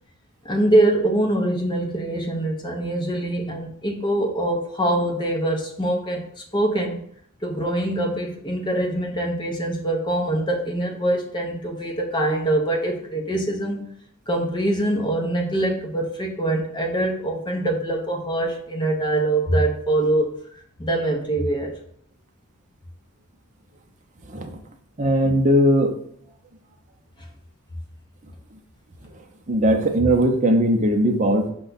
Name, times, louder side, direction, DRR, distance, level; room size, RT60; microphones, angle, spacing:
voice 1, 0.4-7.0 7.4-13.9 14.3-20.4 20.8-21.7, right 1 dB, 20° left, 1 dB, 0.7 m, -23 dB
voice 2, 25.0-25.9 29.5-31.5, equal, 35° right, 3 dB, 0.6 m, -19 dB
5.1 x 2.3 x 3.8 m, 0.65 s
head